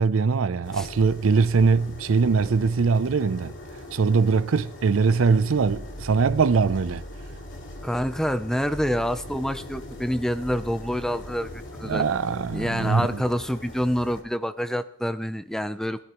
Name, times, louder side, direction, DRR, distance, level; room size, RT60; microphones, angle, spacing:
voice 1, 0.0-3.5 3.9-7.0 11.8-13.2, right 5 dB, 85° right, 0.5 m, -22 dB
sound 1, 0.6-14.2, left 1 dB, 70° left, 2.2 m, -40 dB
voice 2, 7.8-12.0 12.5-16.0, equal, 5° left, 0.5 m, -27 dB
22.0 x 13.0 x 3.0 m
head